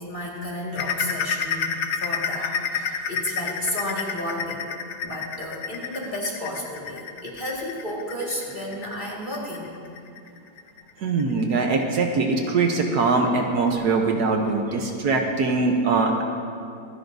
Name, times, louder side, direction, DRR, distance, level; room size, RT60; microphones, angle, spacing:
voice 1, 0.0-9.7 14.7-14.8, left 1 dB, 25° left, -4 dB, 2.0 m, -32 dB
sound 1, 0.8-12.0 12.4-12.6 13.0-13.1 13.7-13.8, left 6 dB, 60° left, 0.9 m, -30 dB
voice 2, 11.0-16.2, right 3 dB, 65° right, 3 dB, 1.4 m, -22 dB
25.0 x 11.0 x 2.7 m, 2.5 s
omnidirectional pair, 1.9 m